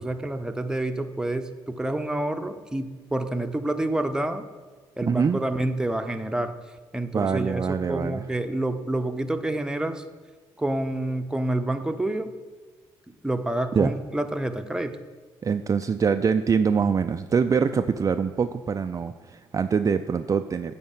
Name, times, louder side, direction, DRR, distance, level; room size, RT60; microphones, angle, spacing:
voice 1, 0.0-4.4 5.0-6.6 6.9-7.6 7.9-10.0 10.6-12.3 13.2-15.0, right 1 dB, 5° right, 6 dB, 0.9 m, -28 dB
voice 2, 5.0-5.4 7.1-8.2 13.7-13.9 15.4-20.7, right 6 dB, 35° right, 8 dB, 0.4 m, -24 dB
9.5 x 4.2 x 7.4 m, 1.4 s
supercardioid pair, 65°, 10 cm